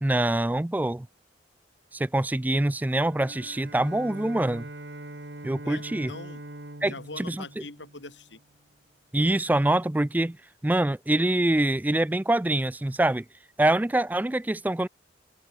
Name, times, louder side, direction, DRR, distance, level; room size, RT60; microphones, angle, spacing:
voice 1, 0.0-1.1 1.9-4.7 5.4-6.1 6.8-7.4 9.1-10.4 10.6-13.2 13.6-14.9, right 1 dB, 10° right, 0.3 m, -25 dB
Bowed string instrument, 3.0-8.5, right 1 dB, 70° right, 2.5 m, -42 dB
voice 2, 5.6-6.4 6.8-8.4, left 3 dB, 85° left, 6.9 m, -42 dB
open air
head